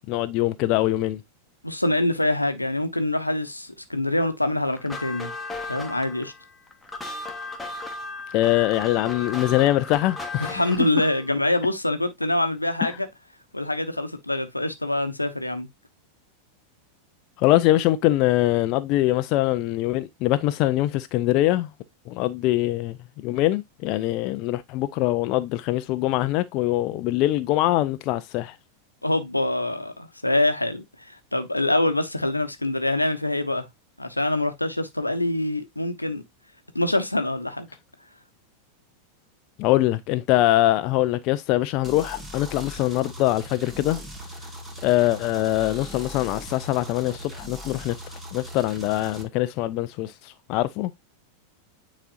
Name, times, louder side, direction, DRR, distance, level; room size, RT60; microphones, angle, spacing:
voice 1, 0.1-1.2 8.3-10.6 12.8-12.9 17.4-21.7 22.1-28.6 39.6-44.0 44.8-48.0 48.3-50.9, left 15 dB, 40° left, 0.4 m, -23 dB
voice 2, 1.6-5.3 5.7-6.3 10.4-13.1 13.5-15.7 29.0-33.7 34.0-36.2 36.7-37.7, left 1 dB, 85° left, 0.8 m, -25 dB
sound 1, 4.7-11.3, left 2 dB, 10° left, 1.3 m, -36 dB
sound 2, 41.8-49.2, equal, 15° right, 1.7 m, -39 dB
9.1 x 4.1 x 2.5 m
figure-of-eight pair, 90°, 0 cm